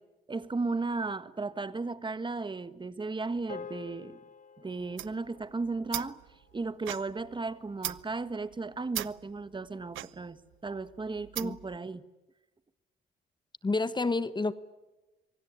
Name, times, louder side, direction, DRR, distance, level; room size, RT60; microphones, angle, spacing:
voice 1, 0.3-4.2 4.6-6.2 6.5-12.0, right 3 dB, 25° right, 13 dB, 1.5 m, -35 dB
sound 1, 3.5-8.0, left 6 dB, 40° left, 2.0 m, -49 dB
sound 2, 4.8-11.8, right 14 dB, 80° right, 0.8 m, -41 dB
voice 2, 13.6-14.5, left 3 dB, 20° left, 15 dB, 1.1 m, -29 dB
26.0 x 24.5 x 8.9 m, 1.1 s
cardioid pair, 90°, 20 cm